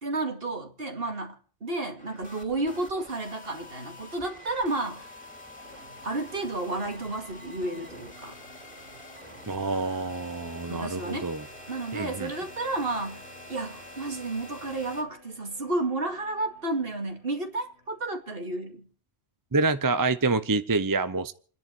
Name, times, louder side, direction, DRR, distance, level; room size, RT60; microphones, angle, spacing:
voice 1, 0.0-5.1 6.0-8.4 10.7-11.3 11.7-13.2 13.5-18.9, right 2 dB, 60° right, 2.4 m, -32 dB
sound 1, 2.0-15.0, left 1 dB, 5° left, 2.7 m, -46 dB
sound 2, 5.6-18.6, left 1 dB, 75° left, 4.1 m, -54 dB
voice 2, 9.5-11.4 11.9-12.3 19.5-21.3, right 3 dB, 20° right, 0.6 m, -27 dB
29.0 x 10.5 x 4.5 m
omnidirectional pair, 1.1 m